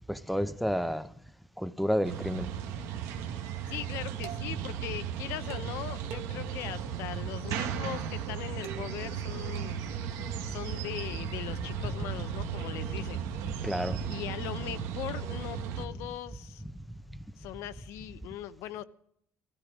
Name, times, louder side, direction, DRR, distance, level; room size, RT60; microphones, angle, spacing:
voice 1, 0.1-1.1 1.6-2.5 13.6-14.0, equal, ahead, 0.6 m, -30 dB
sound 1, 2.0-15.8, right 8 dB, 90° right, 1.4 m, -36 dB
voice 2, 3.4-9.8 10.4-13.3 14.1-16.6 17.4-18.8, left 12 dB, 80° left, 0.8 m, -40 dB
sound 2, 3.9-10.7, right 10 dB, 70° right, 1.1 m, -50 dB
16.5 x 13.5 x 5.0 m
cardioid pair, 135°, 5 cm